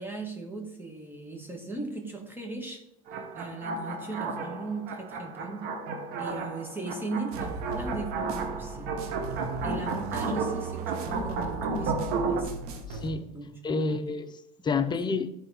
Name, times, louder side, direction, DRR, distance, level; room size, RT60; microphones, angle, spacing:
voice 1, 0.0-2.8 3.3-5.7 6.2-9.0 9.6-12.5 13.3-14.1 14.9-15.0, right 3 dB, 10° right, 2.0 m, -38 dB
sound 1, 3.1-12.4, right 4 dB, 60° right, 1.7 m, -33 dB
sound 2, 7.3-13.1, right 2 dB, 80° right, 1.6 m, -38 dB
voice 2, 12.9-13.3 13.6-15.3, left 4 dB, 25° left, 0.7 m, -29 dB
11.5 x 4.3 x 5.1 m
supercardioid pair, 110°, 19 cm